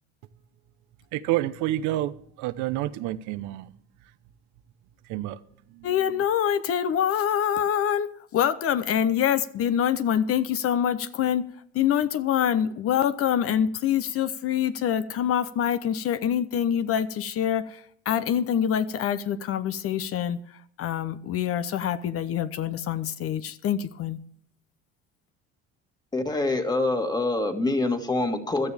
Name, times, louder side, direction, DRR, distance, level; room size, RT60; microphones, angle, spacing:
voice 1, 1.1-3.7 5.1-5.4 5.7-5.9, right 14 dB, 75° right, 0.9 m, -29 dB
voice 2, 5.8-11.5 11.7-24.2, left 9 dB, 50° left, 0.8 m, -25 dB
voice 3, 26.1-28.7, left 2 dB, 15° left, 1.9 m, -25 dB
16.5 x 12.5 x 3.5 m
supercardioid pair, 105°, 30 cm